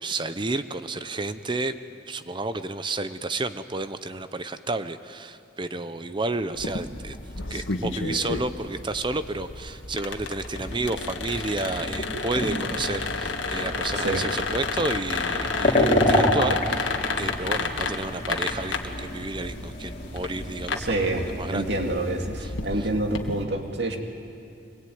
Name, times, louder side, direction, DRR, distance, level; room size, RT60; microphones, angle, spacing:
voice 1, 0.0-1.7 2.1-7.2 7.5-21.1 21.4-21.7 22.4-22.5 22.8-22.9, right 2 dB, 25° right, 11 dB, 0.7 m, -31 dB
sound 1, 6.5-23.4, left 3 dB, 90° left, 1.8 m, -32 dB
sound 2, 10.5-22.2, left 1 dB, 35° left, 3.3 m, -29 dB
voice 2, 20.8-24.0, right 2 dB, 60° right, 3 dB, 2.5 m, -27 dB
24.0 x 20.5 x 9.4 m, 2.6 s
head